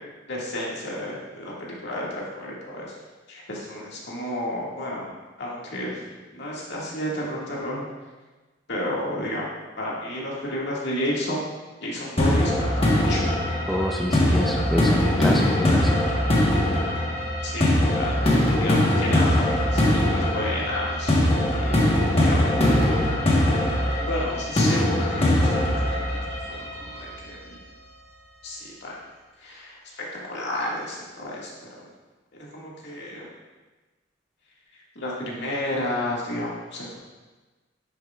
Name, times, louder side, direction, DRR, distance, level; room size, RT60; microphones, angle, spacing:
voice 1, 0.3-3.0 3.3-5.1 5.4-6.0 6.3-7.9 8.7-9.5 9.8-13.2 17.4-21.8 22.2-22.8 24.0-26.2 26.5-27.6 28.4-28.9 29.4-31.9 32.5-33.3 34.7-37.0, left 1 dB, 65° left, -4 dB, 2.0 m, -32 dB
sound 1, 12.2-27.1, left 1 dB, 30° left, 1.3 m, -22 dB
voice 2, 13.7-15.9, equal, ahead, 0 dB, 0.5 m, -27 dB
10.5 x 7.4 x 2.4 m, 1.2 s
head